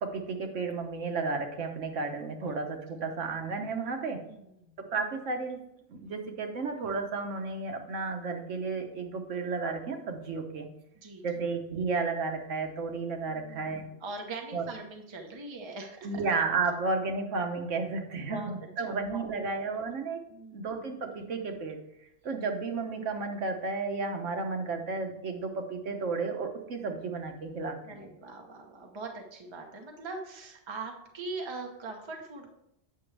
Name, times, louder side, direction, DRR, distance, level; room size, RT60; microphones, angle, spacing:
voice 1, 0.0-4.2 4.8-5.6 5.9-10.7 11.2-13.9 14.5-14.7 16.0-20.2 20.5-21.8 22.2-28.1, right 4 dB, 75° right, 4 dB, 1.3 m, -33 dB
voice 2, 4.3-4.8 11.0-11.4 13.3-16.2 18.3-18.5 18.8-19.3 20.3-20.7 27.8-32.5, right 3 dB, 25° right, 2 dB, 0.9 m, -42 dB
8.1 x 6.1 x 3.3 m, 0.82 s
omnidirectional pair, 1.3 m